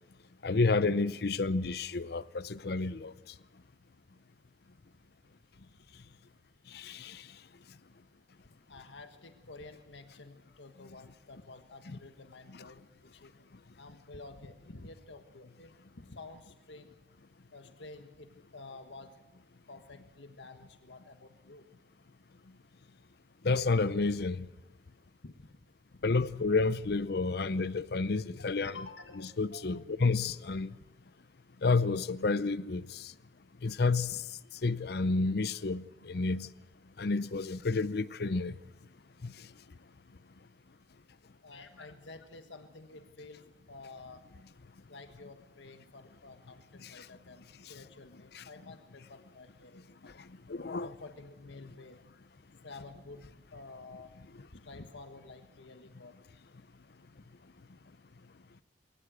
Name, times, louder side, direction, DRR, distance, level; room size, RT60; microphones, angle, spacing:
voice 1, 0.4-3.1 6.7-7.3 23.4-24.5 26.0-28.8 29.4-30.7 31.6-33.1 33.6-34.2 34.6-36.5 37.0-38.5 39.2-39.3 46.8-47.1 47.7-47.8 48.3-48.4 50.0-50.1 50.5-50.9, left 3 dB, 60° left, 0.6 m, -30 dB
voice 2, 8.5-13.3 13.8-16.9 17.5-19.1 19.7-21.7 25.2-26.1 28.4-29.7 30.3-30.4 41.4-44.3 44.5-44.6 44.9-50.2 50.8-52.0 52.6-56.2, left 3 dB, 85° left, 1.4 m, -51 dB
21.5 x 18.5 x 7.9 m
head